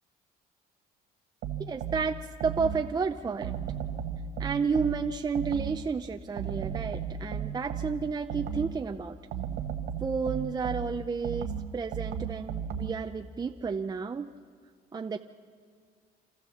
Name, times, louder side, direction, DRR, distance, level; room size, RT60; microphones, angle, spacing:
sound 1, 1.4-3.0 3.4-5.9 6.4-8.8 9.3-13.1, right 7 dB, 85° right, 1.3 m, -35 dB
voice 1, 1.6-2.2 2.4-3.6 4.4-9.2 10.0-14.3 14.9-15.2, right 5 dB, 25° right, 5 dB, 0.6 m, -31 dB
26.5 x 14.0 x 7.1 m, 2.1 s
cardioid pair, 110°, 17 cm